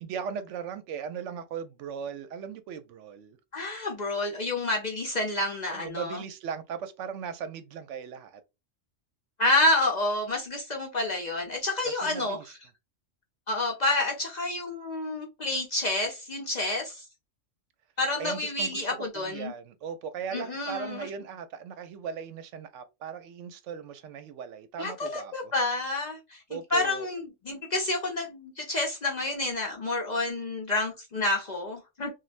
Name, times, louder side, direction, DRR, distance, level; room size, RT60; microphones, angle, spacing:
voice 1, 0.0-3.4 5.7-8.4 11.9-12.5 18.2-25.5 26.5-27.1, right 7 dB, 75° right, 0.9 m, -38 dB
voice 2, 3.5-6.2 9.4-12.4 13.5-17.0 18.0-19.5 20.3-21.1 24.8-32.1, left 2 dB, 45° left, 0.6 m, -29 dB
3.1 x 2.3 x 2.4 m
omnidirectional pair, 1.3 m